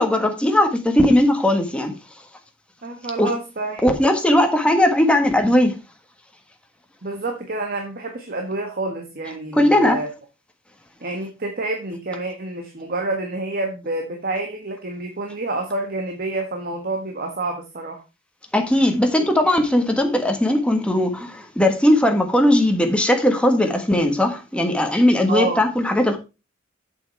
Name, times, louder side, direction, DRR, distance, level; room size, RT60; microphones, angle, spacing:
voice 1, 0.0-1.9 3.2-3.3 3.8-5.7 9.5-10.0 18.5-26.2, left 1 dB, 5° left, 1.4 m, -18 dB
voice 2, 2.8-3.9 7.0-10.1 11.0-18.0 25.3-25.6, right 2 dB, 50° right, 1.5 m, -28 dB
8.3 x 7.0 x 4.5 m
head